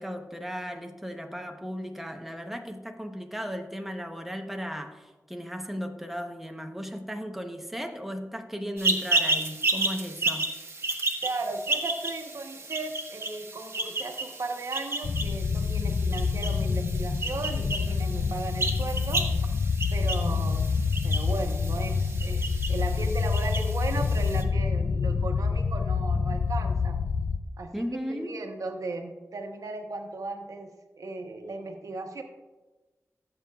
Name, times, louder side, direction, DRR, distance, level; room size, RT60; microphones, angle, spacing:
voice 1, 0.0-10.5 27.7-28.4, equal, 5° right, 4 dB, 0.9 m, -36 dB
sound 1, 8.8-24.4, right 3 dB, 45° right, 1.1 m, -32 dB
voice 2, 11.2-19.2 19.9-20.6 21.0-27.0 27.6-30.7 31.0-32.2, right 3 dB, 85° right, 4 dB, 0.9 m, -36 dB
sound 2, 15.0-27.4, left 5 dB, 65° left, 0.5 m, -27 dB
16.5 x 7.7 x 2.4 m, 1.2 s
wide cardioid pair, 70°, 6 cm